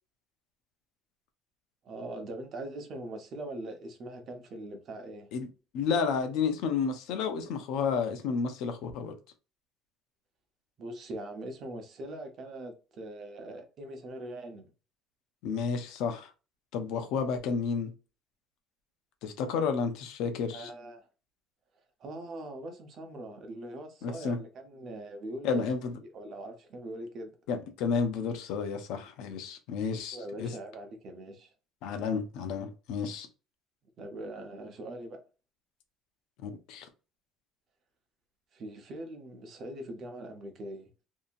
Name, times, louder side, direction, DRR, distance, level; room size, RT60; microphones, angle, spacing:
voice 1, 1.8-5.3 10.8-14.7 20.5-21.1 22.0-25.6 26.0-27.3 30.1-31.5 34.0-35.2 38.5-40.9, right 1 dB, 40° right, 0.8 m, -42 dB
voice 2, 5.7-9.1 15.4-16.3 16.7-17.9 19.2-20.7 24.0-24.4 25.4-26.0 27.5-30.5 31.8-33.3 36.4-36.9, left 5 dB, 75° left, 0.7 m, -31 dB
2.7 x 2.7 x 2.5 m
cardioid pair, 150°, 0 cm